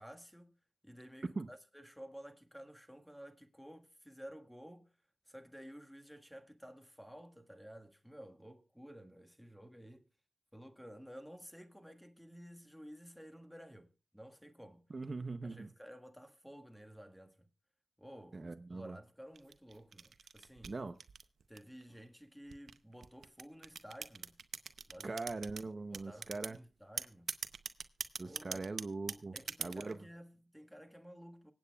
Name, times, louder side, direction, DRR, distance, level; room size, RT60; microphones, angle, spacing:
voice 1, 0.0-5.0 5.3-10.1 10.5-14.8 15.4-17.5 18.0-20.7 21.5-24.4 24.9-25.2 25.9-27.3 28.2-28.7 29.3-31.5, equal, ahead, 1.5 m, -53 dB
voice 2, 14.9-15.7 18.3-19.0 20.7-21.0 25.0-26.6 28.2-29.3 29.6-30.0, right 3 dB, 45° right, 0.7 m, -41 dB
sound 1, 19.4-21.8 22.5-25.6 25.9-26.6 27.0-29.9, right 6 dB, 85° right, 0.6 m, -42 dB
25.0 x 8.6 x 2.3 m
cardioid pair, 70°, 0 cm